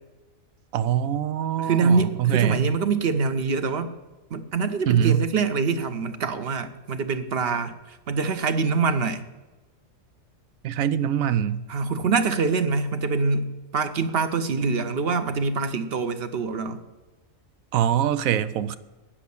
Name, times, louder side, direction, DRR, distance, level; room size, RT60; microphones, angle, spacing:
voice 1, 0.7-2.7 4.9-5.2 10.6-11.6 17.7-18.8, right 10 dB, 85° right, 14 dB, 1.1 m, -23 dB
voice 2, 1.6-3.9 4.3-9.2 11.7-16.8, right 4 dB, 50° right, 10 dB, 1.0 m, -25 dB
9.4 x 7.4 x 8.4 m, 1.2 s
omnidirectional pair, 1.4 m